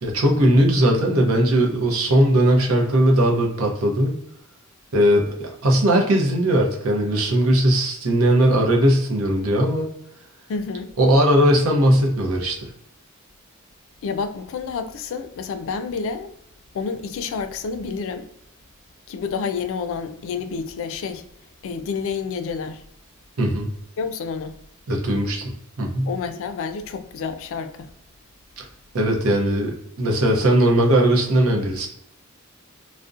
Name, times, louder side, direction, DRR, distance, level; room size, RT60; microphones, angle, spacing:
voice 1, 0.0-4.1 4.9-9.9 11.0-12.7 23.4-23.7 24.9-25.4 25.8-26.1 28.6-28.7 28.9-31.9, right 1 dB, 75° right, 0.6 m, -19 dB
voice 2, 10.5-10.9 14.0-16.3 16.7-18.3 19.1-21.2 21.6-22.8 24.0-24.5 26.1-27.9, left 5 dB, 65° left, 0.3 m, -29 dB
2.5 x 2.1 x 2.4 m
head